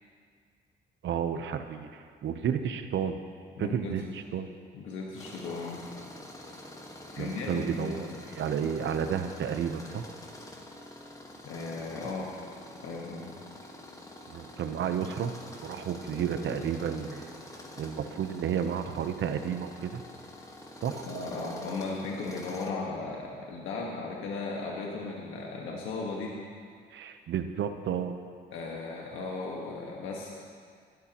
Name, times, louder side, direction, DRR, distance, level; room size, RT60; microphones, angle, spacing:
voice 1, 1.0-3.2 3.6-4.0 4.3-4.5 7.2-8.1 8.4-10.1 14.3-15.3 15.6-17.3 17.8-20.0 20.8-21.1 26.9-28.1, right 8 dB, 70° right, 8 dB, 0.9 m, -31 dB
voice 2, 3.6-4.1 4.7-5.9 7.1-8.2 11.4-12.3 12.8-13.3 21.1-26.4 28.5-30.3, left 3 dB, 90° left, -2 dB, 1.6 m, -36 dB
Tools, 5.2-22.7, left 1 dB, 15° left, 1.6 m, -46 dB
20.0 x 12.5 x 3.0 m, 2.1 s
cardioid pair, 90°, 20 cm